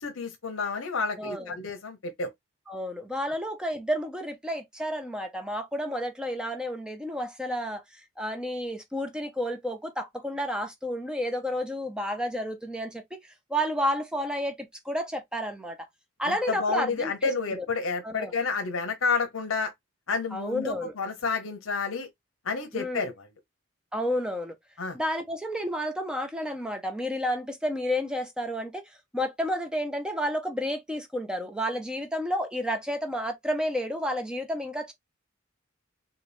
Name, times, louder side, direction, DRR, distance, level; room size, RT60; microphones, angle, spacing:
voice 1, 0.0-2.3 16.2-19.7 20.1-22.1 22.4-23.3 24.8-25.0, left 4 dB, 75° left, 0.7 m, -30 dB
voice 2, 1.2-1.5 2.7-7.8 8.2-13.2 13.5-15.9 16.2-17.6 18.0-18.3 20.3-20.9 22.7-23.1 23.9-24.5 24.9-28.8 29.1-34.9, equal, 5° right, 0.6 m, -31 dB
4.0 x 2.3 x 3.3 m
head